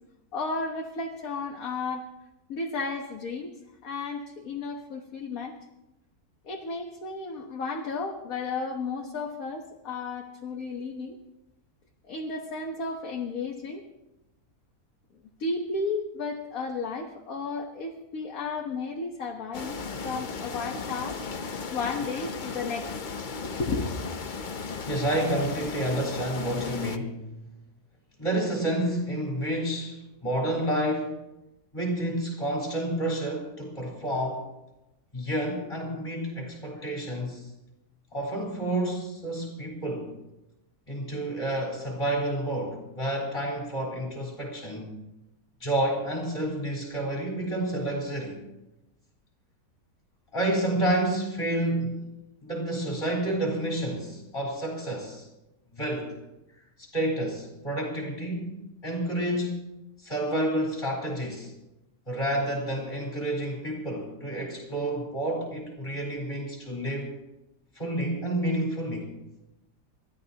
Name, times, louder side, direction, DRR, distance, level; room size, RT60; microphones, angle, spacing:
voice 1, 0.3-2.0 2.5-3.5 3.8-5.5 6.4-11.2 12.0-13.8 15.4-19.8 20.0-21.2 21.7-22.9 23.4-23.9, left 3 dB, 60° left, 1 dB, 1.7 m, -33 dB
sound 1, 19.5-27.0, left 5 dB, 45° left, 0.7 m, -36 dB
voice 2, 24.8-27.2 28.2-31.2 31.7-34.5 35.1-37.4 38.1-40.1 40.9-44.9 45.6-48.4 50.3-52.0 52.4-55.3 55.7-56.2 56.8-58.5 58.8-59.6 60.0-61.5 62.1-67.1 67.7-69.1, right 1 dB, 20° left, -3 dB, 4.3 m, -29 dB
29.0 x 13.0 x 2.9 m, 0.94 s
omnidirectional pair, 1.7 m